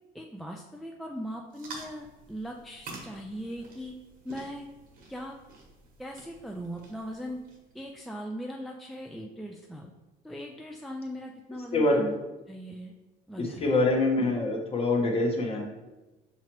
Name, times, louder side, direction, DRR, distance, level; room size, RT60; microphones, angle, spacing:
voice 1, 0.1-3.9 4.2-4.7 5.1-5.4 6.0-7.4 7.7-9.9 10.2-12.1 12.5-12.9 13.3-13.7, equal, ahead, 1 dB, 0.3 m, -39 dB
sound 1, 1.5-7.8, right 3 dB, 55° right, 1.0 m, -48 dB
voice 2, 11.7-12.1 13.4-15.6, left 2 dB, 35° left, 0 dB, 0.9 m, -25 dB
5.5 x 2.9 x 3.0 m, 1.1 s
cardioid pair, 110°, 17 cm